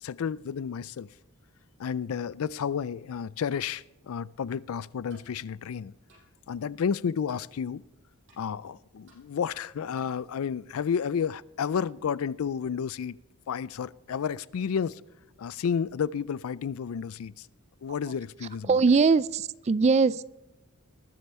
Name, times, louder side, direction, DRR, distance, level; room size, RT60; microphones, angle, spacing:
voice 1, 0.0-1.1 1.8-5.9 6.5-7.8 8.4-13.2 13.5-15.0 15.4-17.5 17.8-18.7, left 7 dB, 75° left, 0.4 m, -31 dB
sound 1, 5.1-5.3 6.1-6.3 7.2-7.5 8.3-8.4 9.1-9.2 10.0-10.2, right 2 dB, 60° right, 5.9 m, -56 dB
voice 2, 18.7-20.2, right 4 dB, 30° right, 0.3 m, -21 dB
20.0 x 8.1 x 4.3 m
head